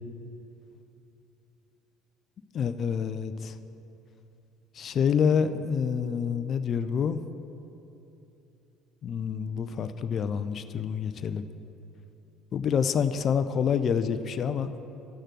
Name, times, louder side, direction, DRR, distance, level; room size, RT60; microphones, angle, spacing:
voice 1, 2.5-3.5 4.8-7.2 9.0-11.5 12.5-14.7, left 7 dB, 45° left, 11 dB, 0.5 m, -27 dB
11.5 x 6.6 x 6.1 m, 2.9 s
hypercardioid pair, 60°, 0 cm